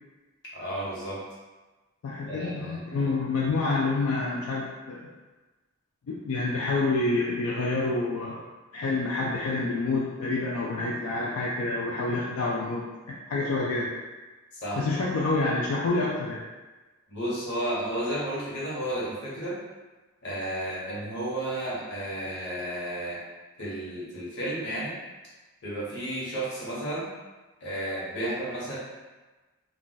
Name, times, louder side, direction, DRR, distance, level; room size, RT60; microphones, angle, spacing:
voice 1, 0.5-1.3 2.3-3.1 14.5-14.9 17.1-19.6 20.2-23.2 23.6-24.9 25.6-27.1 27.6-28.8, right 1 dB, 55° left, -7 dB, 1.1 m, -32 dB
voice 2, 2.0-5.1 6.1-8.5 8.7-13.9 14.8-16.4, left 3 dB, 85° left, -4 dB, 0.4 m, -28 dB
2.4 x 2.2 x 3.9 m, 1.2 s
head